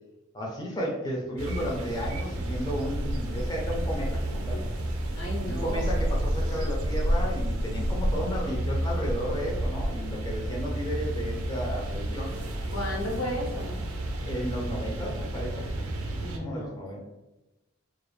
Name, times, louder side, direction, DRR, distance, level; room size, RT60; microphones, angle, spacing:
voice 1, 0.3-4.6 5.5-12.3 14.3-15.7 16.4-17.0, equal, 20° left, -2 dB, 0.4 m, -33 dB
sound 1, 1.4-16.4, right 1 dB, 90° right, 0.4 m, -30 dB
voice 2, 5.2-5.9 12.7-13.8 16.2-17.0, left 1 dB, 90° left, -2 dB, 0.8 m, -34 dB
2.4 x 2.0 x 3.0 m, 1.0 s
head